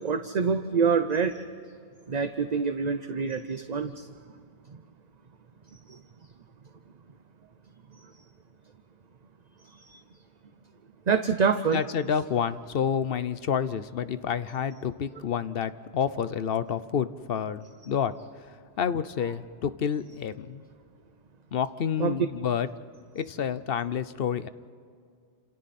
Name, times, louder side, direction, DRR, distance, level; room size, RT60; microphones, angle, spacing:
voice 1, 0.0-1.4 2.1-4.1 5.9-6.0 8.0-8.1 9.7-10.0 11.1-11.8 22.0-22.2, right 5 dB, 45° right, 9 dB, 0.8 m, -26 dB
voice 2, 11.7-18.1 18.8-20.6 21.5-22.7 23.1-24.5, left 7 dB, 60° left, 14 dB, 0.9 m, -29 dB
29.5 x 27.5 x 4.3 m, 2.3 s
omnidirectional pair, 1.1 m